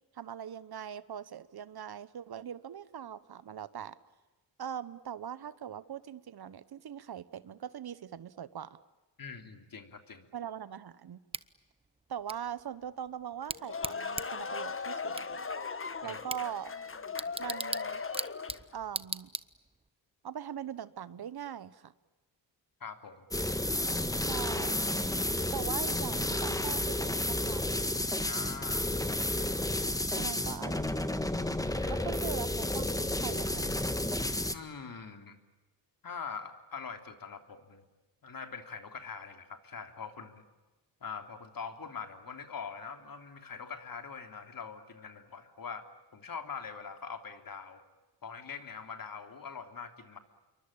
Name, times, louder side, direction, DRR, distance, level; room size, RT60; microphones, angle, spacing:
voice 1, 0.1-4.0 4.6-8.8 10.3-11.2 12.1-15.4 16.0-16.7 17.4-18.0 18.7-19.3 20.2-21.9 24.2-24.8 25.5-27.7 30.1-31.1 31.9-32.9 33.2-33.7, right 9 dB, 55° right, 16 dB, 1.2 m, -41 dB
voice 2, 9.2-10.3 16.0-16.2 22.8-23.2 28.2-29.2 31.8-32.0 34.5-35.4 36.0-37.8 38.2-40.4 41.0-45.9 46.1-47.8 48.2-50.2, left 6 dB, 50° left, 7 dB, 3.2 m, -43 dB
Bicycle / Tick, 11.3-19.9, right 3 dB, 15° right, 0.9 m, -42 dB
sound 1, 13.4-18.7, left 5 dB, 30° left, 1.6 m, -38 dB
sound 2, 23.3-34.5, left 1 dB, 10° left, 1.6 m, -31 dB
27.5 x 23.5 x 8.9 m, 1.1 s
cardioid pair, 95°, 44 cm